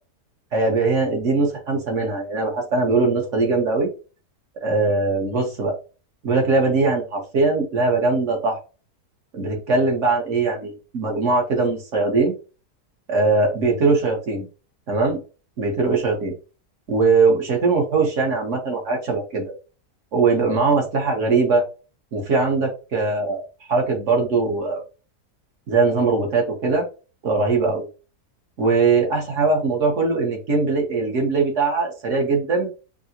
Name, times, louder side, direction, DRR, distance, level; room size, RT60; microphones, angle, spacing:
voice 1, 0.5-3.9 4.6-5.7 6.2-8.6 9.3-12.4 13.1-14.5 14.9-15.2 15.6-16.3 16.9-19.5 20.1-21.6 22.1-24.8 25.7-26.9 27.2-27.8 28.6-32.7, right 3 dB, 55° right, 1 dB, 1.2 m, -21 dB
4.7 x 2.1 x 2.8 m, 0.33 s
omnidirectional pair, 1.7 m